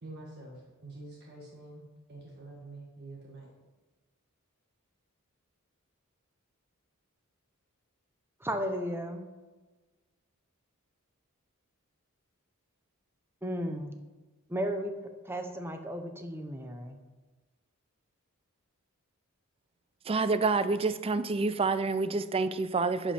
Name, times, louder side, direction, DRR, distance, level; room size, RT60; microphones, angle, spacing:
voice 1, 0.0-3.5, right 2 dB, 50° right, -2 dB, 1.4 m, -47 dB
voice 2, 8.4-9.2 13.4-13.9 14.5-14.9 15.2-17.0, equal, 10° right, 5 dB, 0.8 m, -34 dB
voice 3, 20.1-23.1, right 3 dB, 25° right, 13 dB, 0.4 m, -28 dB
10.5 x 5.1 x 4.3 m, 1.2 s
head